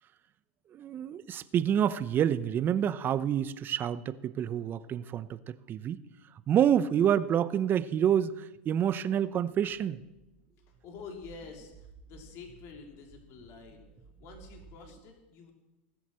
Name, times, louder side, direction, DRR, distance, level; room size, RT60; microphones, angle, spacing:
voice 1, 0.7-6.0 6.5-10.0, right 9 dB, 35° right, 0.7 m, -28 dB
sound 1, 9.5-15.0, right 5 dB, 15° right, 2.1 m, -56 dB
voice 2, 10.6-13.9 14.2-15.5, left 5 dB, 50° left, 3.0 m, -48 dB
18.5 x 7.2 x 7.6 m
hypercardioid pair, 110°, 6 cm